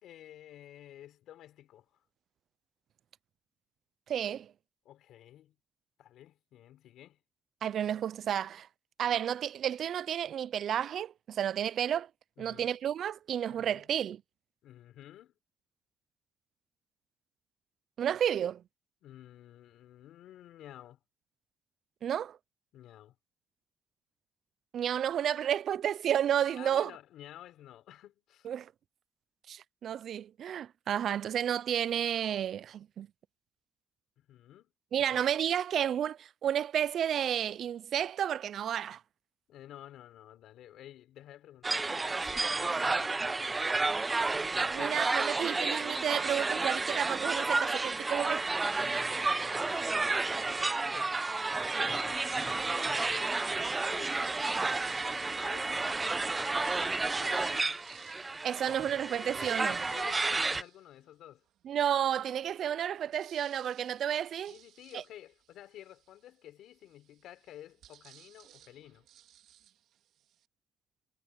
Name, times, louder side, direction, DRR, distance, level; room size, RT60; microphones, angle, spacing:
voice 1, 0.0-2.0 4.9-5.5 6.0-7.2 12.4-12.8 13.5-13.9 14.6-15.3 19.0-21.0 22.7-23.2 26.5-28.5 34.2-34.7 35.0-35.3 39.5-43.9 44.5-45.3 48.8-51.2 51.8-53.3 53.9-54.9 55.3-55.8 56.3-57.8 59.9-61.4 64.5-69.1, left 12 dB, 85° left, 3.6 m, -51 dB
voice 2, 4.1-4.5 7.6-8.7 9.0-12.1 12.4-14.2 18.0-18.6 22.0-22.4 24.7-26.9 28.4-28.7 29.5-33.1 34.9-39.0 44.7-48.4 58.4-59.8 61.7-64.5, right 9 dB, 65° right, 0.4 m, -31 dB
sound 1, 41.6-60.6, right 3 dB, 25° right, 0.6 m, -31 dB
sound 2, 53.7-55.8 56.4-61.6 62.1-62.2 62.4-70.5, right 11 dB, 80° right, 2.6 m, -59 dB
cardioid pair, 90°, 0 cm